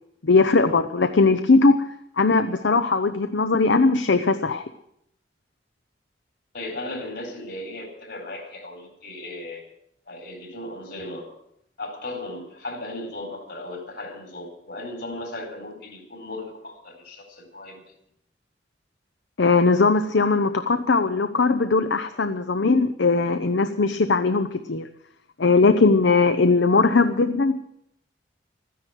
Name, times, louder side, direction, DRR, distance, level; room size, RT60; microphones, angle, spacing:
voice 1, 0.2-1.8 2.2-4.6 19.4-24.9 25.4-27.6, left 3 dB, 80° left, 9 dB, 0.7 m, -19 dB
voice 2, 6.5-9.6 10.1-11.3 11.8-17.8, left 2 dB, 65° left, 4 dB, 4.3 m, -36 dB
13.5 x 10.5 x 8.9 m, 0.76 s
head